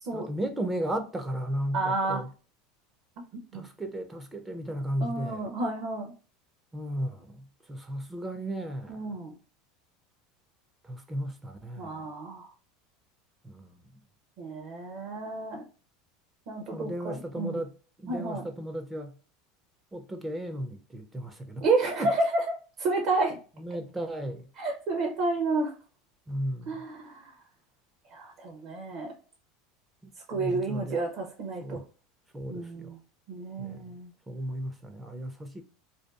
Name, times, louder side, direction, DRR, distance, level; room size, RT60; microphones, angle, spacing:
voice 1, 0.1-2.3 3.5-5.5 6.7-9.2 10.8-12.1 13.4-13.8 16.7-17.7 18.0-19.2 19.9-21.6 22.0-22.1 23.6-24.5 26.3-26.8 30.0-31.0 31.6-31.8 32.3-33.0 33.6-34.0 34.3-35.6, right 1 dB, 10° right, 0.4 m, -35 dB
voice 2, 1.7-2.2 3.5-3.6 5.0-6.1 8.9-9.4 11.8-12.5 14.4-15.6 16.5-17.6 18.1-18.5 21.6-22.2 22.8-23.4 24.6-25.7 26.7-27.4 28.1-29.1 30.3-31.8 32.5-33.0 33.3-34.1, right 3 dB, 55° right, 0.6 m, -30 dB
2.6 x 2.2 x 2.2 m
supercardioid pair, 125°, 0 cm